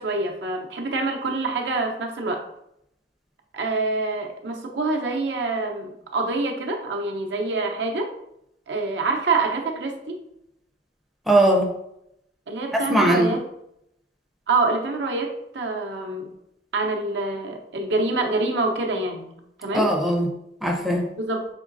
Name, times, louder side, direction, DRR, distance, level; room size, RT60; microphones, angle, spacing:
voice 1, 0.0-2.4 3.5-8.1 8.7-10.2 12.5-13.4 14.5-16.3 16.7-19.3 19.6-19.9 21.2-21.5, right 3 dB, 75° right, 2 dB, 0.6 m, -26 dB
voice 2, 11.3-11.7 12.7-13.4 19.7-20.3 20.6-21.1, right 1 dB, ahead, -1 dB, 0.5 m, -20 dB
3.8 x 3.6 x 2.5 m, 0.79 s
head